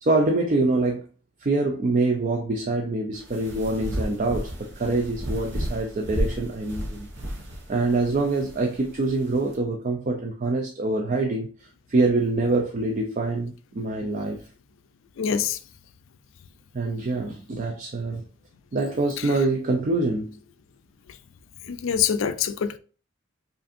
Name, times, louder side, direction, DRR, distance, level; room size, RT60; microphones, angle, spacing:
voice 1, 0.0-1.1 1.4-7.1 7.7-11.5 11.9-14.4 16.7-18.2 18.7-20.4, right 2 dB, 40° right, 0.4 m, -25 dB
sound 1, 3.1-9.5, equal, 60° right, 1.0 m, -33 dB
voice 2, 15.2-15.6 19.2-19.4 21.6-22.8, left 8 dB, 75° left, 0.4 m, -25 dB
5.1 x 2.5 x 2.5 m
head